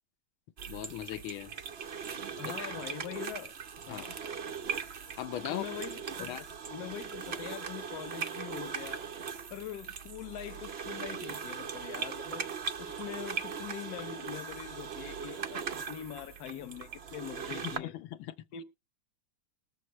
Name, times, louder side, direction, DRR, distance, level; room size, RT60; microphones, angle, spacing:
sound 1, 0.6-17.8, right 6 dB, 85° right, 0.5 m, -39 dB
voice 1, 0.7-1.5 2.1-2.7 3.9-4.1 5.2-5.6 6.2-6.4 17.6-18.3, left 13 dB, 85° left, 1.6 m, -39 dB
voice 2, 2.4-3.5 3.9-4.2 5.5-6.3 6.7-9.1 9.5-12.5 12.8-17.9 18.5-18.6, left 10 dB, 60° left, 1.1 m, -43 dB
20.5 x 7.4 x 3.1 m
omnidirectional pair, 2.2 m